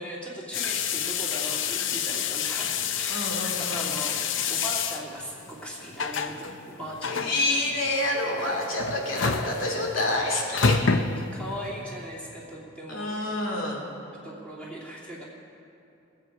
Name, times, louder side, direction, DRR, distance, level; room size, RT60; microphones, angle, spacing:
voice 1, 0.0-4.2 4.5-7.3 8.4-8.5 11.3-13.2 14.2-15.2, equal, 5° left, -5 dB, 2.6 m, -39 dB
sound 1, 0.5-11.7, left 6 dB, 70° left, 0.6 m, -29 dB
voice 2, 3.1-4.0 7.1-11.0 12.9-13.9, left 1 dB, 90° left, -1 dB, 2.6 m, -28 dB
21.5 x 8.3 x 4.9 m, 2.8 s
head